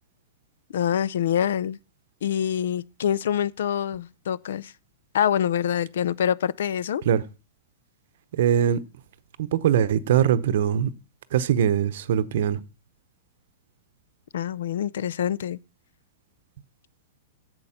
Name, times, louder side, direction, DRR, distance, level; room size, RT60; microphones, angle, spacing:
voice 1, 0.7-1.8 2.2-4.7 5.1-7.0 14.3-15.6, left 9 dB, 70° left, 0.5 m, -25 dB
voice 2, 8.3-8.8 9.4-10.9 11.3-12.6, right 9 dB, 60° right, 0.7 m, -22 dB
11.0 x 8.0 x 5.7 m
supercardioid pair, 165°, 0 cm